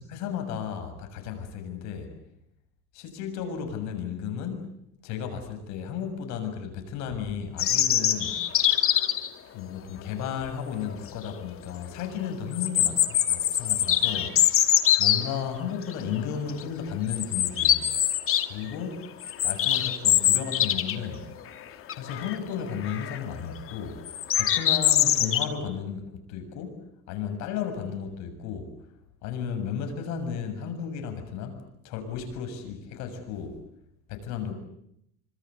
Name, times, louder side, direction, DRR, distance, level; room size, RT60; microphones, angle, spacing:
voice 1, 0.0-2.1 2.9-4.7 5.0-8.7 9.5-14.7 15.0-17.9 18.5-19.1 19.4-21.4 21.9-24.1 24.3-28.7 29.2-33.6 34.1-34.5, left 7 dB, 70° left, 7 dB, 7.0 m, -34 dB
sound 1, 7.6-9.3 10.8-10.9 11.3-11.4 12.5-15.2 15.9-16.2 16.5-16.6 17.1-18.5 18.8-21.1 21.4-21.5 21.9-22.4 22.8-23.2 24.1-25.4, left 11 dB, 45° left, 2.6 m, -23 dB
28.0 x 25.0 x 8.3 m, 0.76 s
cardioid pair, 120°, 30 cm